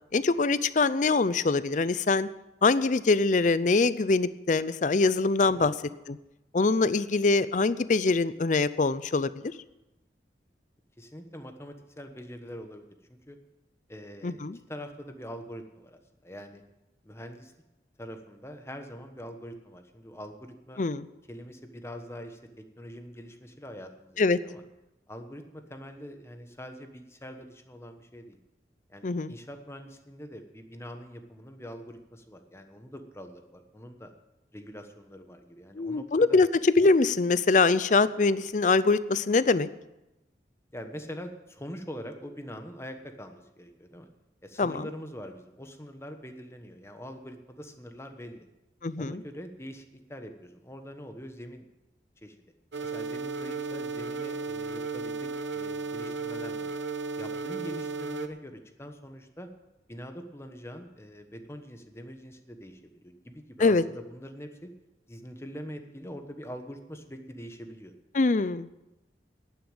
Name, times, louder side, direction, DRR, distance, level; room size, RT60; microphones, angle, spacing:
voice 1, 0.1-2.3 2.6-5.7 6.1-6.2 6.5-9.5 14.2-14.6 20.8-21.1 24.2-24.4 29.0-29.3 35.8-39.7 44.6-44.9 48.8-49.2 63.6-63.8 68.1-68.7, left 3 dB, 45° left, 16 dB, 0.5 m, -23 dB
voice 2, 5.5-5.9 11.0-13.4 13.9-16.6 17.0-17.5 18.0-20.8 21.3-24.6 25.1-28.4 28.9-34.1 34.5-36.4 40.7-44.1 44.4-48.5 49.0-51.6 52.2-52.4 52.8-56.7 57.2-59.5 59.9-64.7 65.1-67.9, equal, 15° left, 6 dB, 1.2 m, -44 dB
sound 1, 52.7-58.3, right 4 dB, 85° right, 1.1 m, -34 dB
11.0 x 9.5 x 9.0 m, 0.98 s
head